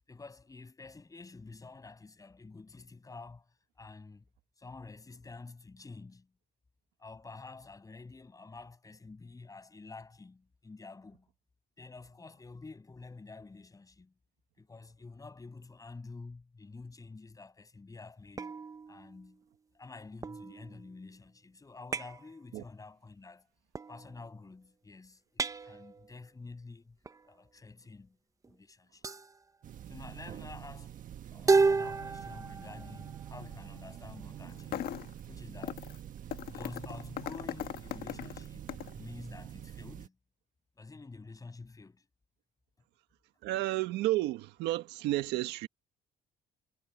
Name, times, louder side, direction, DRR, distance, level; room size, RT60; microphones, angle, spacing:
voice 1, 0.1-4.2 4.6-6.3 7.0-11.3 11.8-14.1 14.6-18.6 18.9-19.4 19.7-23.5 23.9-27.0 27.2-28.2 28.5-29.1 29.9-31.0 31.3-34.9 35.3-35.9 36.4-40.1 40.8-42.1, left 3 dB, 20° left, 6.7 m, -49 dB
sound 1, 18.4-19.4 20.2-21.1 21.9-22.3 23.7-24.3 25.4-26.2 27.1-27.3 28.4-28.5 29.0-29.4 31.5-34.2, right 4 dB, 20° right, 0.8 m, -32 dB
sound 2, 29.6-40.1, right 10 dB, 50° right, 1.5 m, -46 dB
sound 3, 34.5-35.2 35.6-36.0 36.3-39.0, left 12 dB, 65° left, 1.5 m, -39 dB
voice 2, 43.4-45.7, right 16 dB, 90° right, 1.6 m, -31 dB
cardioid pair, 110°, 17 cm